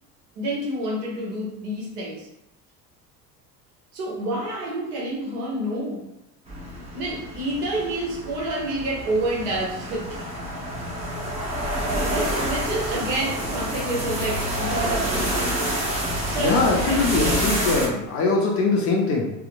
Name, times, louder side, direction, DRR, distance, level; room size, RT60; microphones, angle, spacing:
voice 1, 0.4-2.3 3.9-6.1 6.9-10.3 11.6-15.8 16.3-17.3, right 1 dB, 65° right, -3 dB, 0.9 m, -29 dB
sound 1, 6.5-17.9, right 1 dB, 15° right, 0.7 m, -28 dB
voice 2, 16.4-19.3, left 3 dB, 30° left, -1 dB, 0.4 m, -22 dB
2.7 x 2.0 x 2.5 m, 0.86 s
figure-of-eight pair, 70°, 49 cm